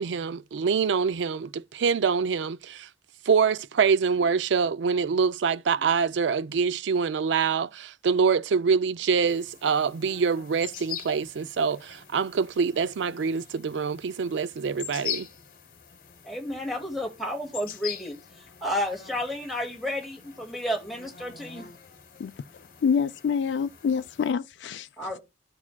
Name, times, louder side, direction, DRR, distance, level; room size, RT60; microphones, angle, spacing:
voice 1, 0.0-2.9 3.3-15.3, right 6 dB, 90° right, 0.4 m, -25 dB
sound 1, 9.3-24.3, left 9 dB, 50° left, 1.2 m, -43 dB
voice 2, 16.3-18.2 18.6-21.7 25.0-25.2, equal, ahead, 1.9 m, -31 dB
voice 3, 22.8-24.9, left 6 dB, 80° left, 0.4 m, -26 dB
14.5 x 4.8 x 2.2 m
head